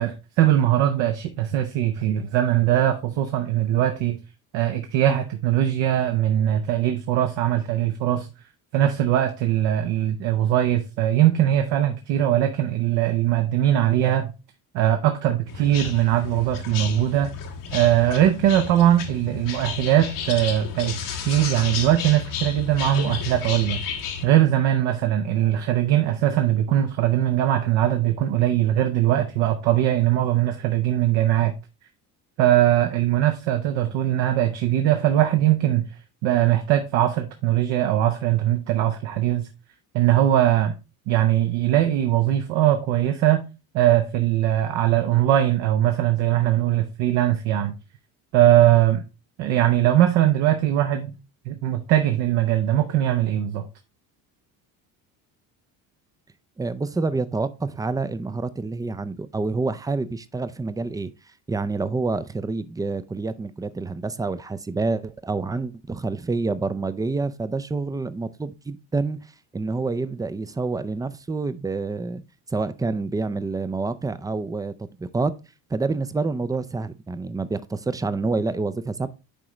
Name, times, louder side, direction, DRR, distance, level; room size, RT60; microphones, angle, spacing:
voice 1, 0.0-4.2 4.5-8.3 8.7-14.3 14.7-17.3 17.7-21.0 21.2-23.8 24.2-31.5 32.4-35.9 36.2-39.5 39.9-40.7 41.1-43.4 43.7-47.7 48.3-49.0 49.4-51.1 51.5-53.7, right 12 dB, 65° right, 0.9 m, -21 dB
sound 1, 15.5-24.2, left 7 dB, 80° left, 1.4 m, -32 dB
voice 2, 56.6-61.1 61.5-69.2 69.5-72.2 72.5-75.4 75.7-79.1, right 3 dB, 10° right, 0.4 m, -27 dB
9.9 x 3.8 x 3.1 m
hypercardioid pair, 70°, 46 cm